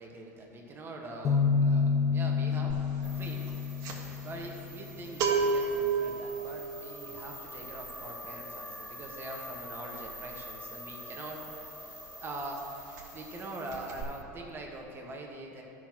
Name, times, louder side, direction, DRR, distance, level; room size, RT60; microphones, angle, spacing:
voice 1, 0.0-3.5 4.2-11.4 12.2-12.6 13.1-15.6, right 2 dB, 25° right, 0 dB, 1.4 m, -43 dB
sound 1, 1.2-4.9, left 5 dB, 35° left, 1.0 m, -29 dB
sound 2, 2.7-3.0 3.2-11.8 12.1-12.3 12.6-13.4 13.7-14.0, right 5 dB, 50° right, 1.6 m, -33 dB
sound 3, 3.0-14.2, equal, ahead, 0.4 m, -46 dB
13.0 x 6.1 x 3.0 m, 2.9 s
hypercardioid pair, 105°, 9 cm